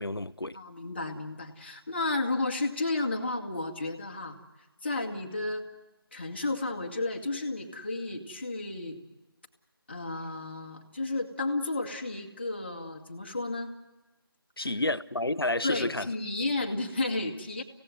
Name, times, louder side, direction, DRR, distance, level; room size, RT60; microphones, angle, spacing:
voice 1, 0.0-0.6 14.6-16.1, left 2 dB, 75° left, 0.9 m, -30 dB
voice 2, 0.5-4.4 4.8-5.6 6.1-9.0 9.9-13.7 14.6-14.7 15.6-17.6, left 2 dB, 30° left, 1.9 m, -32 dB
26.0 x 17.5 x 7.9 m
figure-of-eight pair, 165°, 12 cm